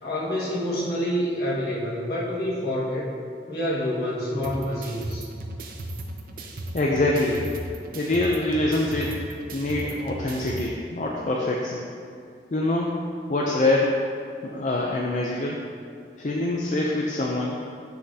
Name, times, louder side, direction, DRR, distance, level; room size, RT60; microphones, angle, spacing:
voice 1, 0.0-3.1 3.5-5.2, equal, 65° left, -7 dB, 1.7 m, -27 dB
sound 1, 4.4-10.7, right 1 dB, 50° right, 0.6 m, -36 dB
voice 2, 6.7-7.5 7.9-9.2 9.5-11.9 12.5-14.0 14.4-15.6 16.2-17.6, left 2 dB, 40° left, -2 dB, 0.5 m, -25 dB
7.3 x 6.5 x 2.8 m, 2.3 s
head